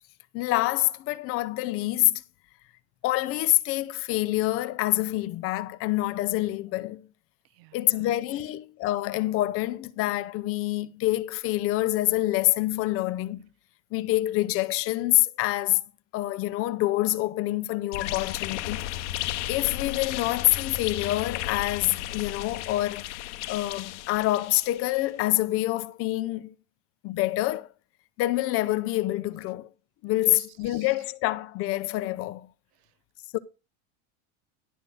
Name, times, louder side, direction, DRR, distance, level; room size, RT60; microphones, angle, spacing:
voice 1, 0.3-2.2 3.0-7.0 7.7-13.5 13.9-15.8 16.1-18.9 19.2-23.1 23.5-26.5 27.0-27.7 28.2-29.7 30.0-32.5 33.3-33.4, left 17 dB, 40° left, 0.6 m, -26 dB
voice 2, 7.5-8.1 8.4-8.5 30.2-31.0, right 16 dB, 65° right, 0.5 m, -52 dB
sound 1, 17.9-25.0, left 14 dB, 85° left, 0.8 m, -34 dB
11.0 x 3.8 x 7.7 m
supercardioid pair, 140°, 34 cm